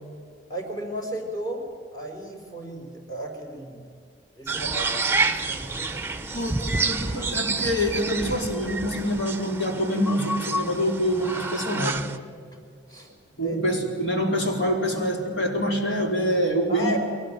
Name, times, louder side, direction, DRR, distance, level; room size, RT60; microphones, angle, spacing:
voice 1, 0.5-1.6 1.9-3.8 4.3-6.0 12.5-12.6 12.9-13.8 16.7-17.0, equal, 20° left, 0 dB, 5.1 m, -35 dB
sound 1, 4.5-12.2, right 3 dB, 15° right, 0.9 m, -28 dB
voice 2, 6.2-12.0 13.4-17.0, equal, 75° left, 1 dB, 4.3 m, -26 dB
22.5 x 19.5 x 9.1 m, 2.2 s
head